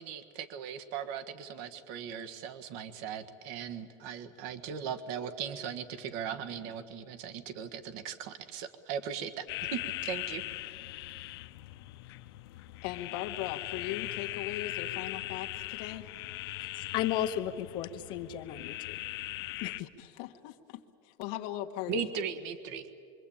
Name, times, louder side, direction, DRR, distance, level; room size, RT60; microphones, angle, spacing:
voice 1, 0.0-9.4 9.7-10.4 21.9-23.0, right 7 dB, 55° right, 10 dB, 1.6 m, -38 dB
sound 1, 9.5-19.8, left 18 dB, 80° left, 0.8 m, -40 dB
voice 2, 12.8-16.1 19.8-22.0, left 13 dB, 55° left, 4 dB, 1.5 m, -39 dB
voice 3, 16.6-19.0 19.6-19.9, left 11 dB, 35° left, 10 dB, 0.9 m, -34 dB
26.5 x 24.0 x 8.8 m, 2.5 s
cardioid pair, 175°, 13 cm